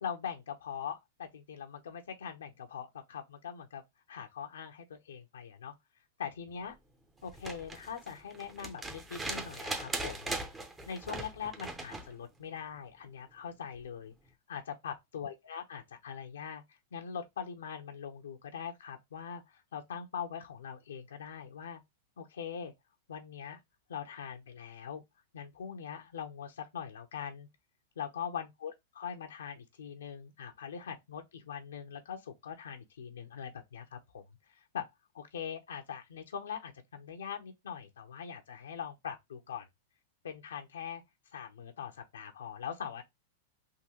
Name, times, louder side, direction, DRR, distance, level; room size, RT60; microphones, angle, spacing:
voice 1, 0.0-3.8 4.1-5.7 6.2-6.8 7.2-10.6 10.9-14.1 14.5-16.6 16.9-21.8 22.2-22.7 23.1-23.6 23.9-25.0 25.3-27.5 28.0-34.2 34.5-34.9 35.1-39.7 40.2-41.0 41.3-43.0, left 7 dB, 85° left, 0.7 m, -42 dB
sound 1, 7.3-12.1 13.7-13.8, right 2 dB, 15° right, 0.8 m, -39 dB
3.7 x 2.6 x 2.9 m
hypercardioid pair, 120°, 0 cm